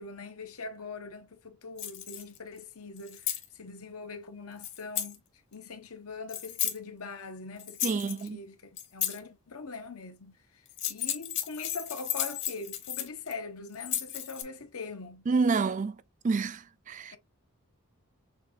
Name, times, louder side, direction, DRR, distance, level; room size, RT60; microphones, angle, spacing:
voice 1, 0.0-5.2 5.5-15.3, left 4 dB, 80° left, 0.9 m, -42 dB
sound 1, 1.8-2.4 3.0-3.5 4.6-5.2 6.3-6.8 7.6-8.3 8.8-9.2 10.7-13.3 13.7-14.4, left 11 dB, 55° left, 1.2 m, -34 dB
voice 2, 7.8-8.4 15.3-16.0 16.2-17.1, right 4 dB, 35° right, 0.3 m, -28 dB
6.6 x 2.3 x 2.6 m
head